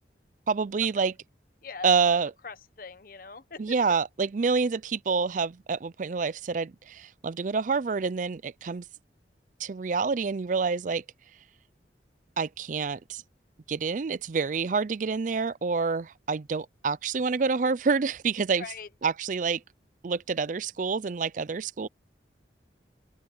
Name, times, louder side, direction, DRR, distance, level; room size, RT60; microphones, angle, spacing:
voice 1, 0.5-1.1 1.8-2.3 3.6-8.8 9.6-11.0 12.4-13.2 13.7-18.6 19.0-19.6 20.0-21.9, right 5 dB, 45° right, 0.4 m, -27 dB
voice 2, 2.4-3.8 18.6-19.1, left 4 dB, 50° left, 1.1 m, -42 dB
open air
head